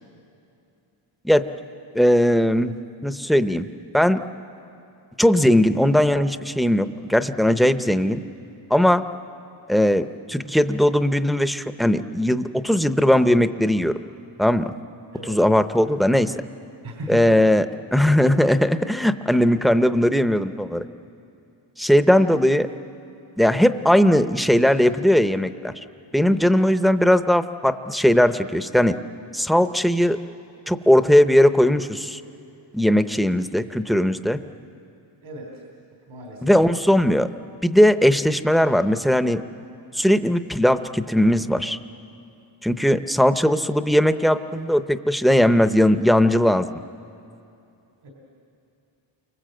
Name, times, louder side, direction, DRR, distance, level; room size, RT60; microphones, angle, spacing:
voice 1, 1.9-2.8 3.0-3.7 3.9-4.2 5.2-8.2 8.7-9.0 9.7-13.9 14.4-14.7 15.2-16.3 17.1-20.9 21.8-22.7 23.4-25.7 26.1-29.0 29.3-30.2 30.7-32.2 32.7-34.4 36.4-37.3 37.6-39.4 39.9-41.8 42.6-46.7, equal, ahead, 10 dB, 0.6 m, -19 dB
voice 2, 16.8-17.2 35.2-35.6 36.1-36.4 48.0-48.1, equal, 80° right, 0 dB, 3.4 m, -37 dB
29.5 x 25.0 x 7.7 m, 2.7 s
wide cardioid pair, 145°, 47 cm